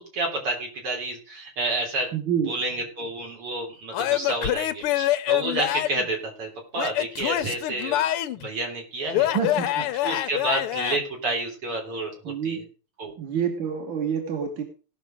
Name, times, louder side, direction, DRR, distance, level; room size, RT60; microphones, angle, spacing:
voice 1, 0.0-2.1 2.5-8.0 8.4-9.3 10.0-12.6 13.0-13.1, right 2 dB, 85° right, 1 dB, 4.4 m, -30 dB
voice 2, 2.1-2.5 9.3-9.9 12.2-12.7 13.2-14.6, right 7 dB, 60° right, 4 dB, 2.3 m, -27 dB
Male speech man speaking / Yell / Laughter, 3.9-6.1 6.8-8.5 9.1-11.0, left 14 dB, 90° left, 1.7 m, -25 dB
18.0 x 6.2 x 5.0 m, 0.37 s
omnidirectional pair, 2.4 m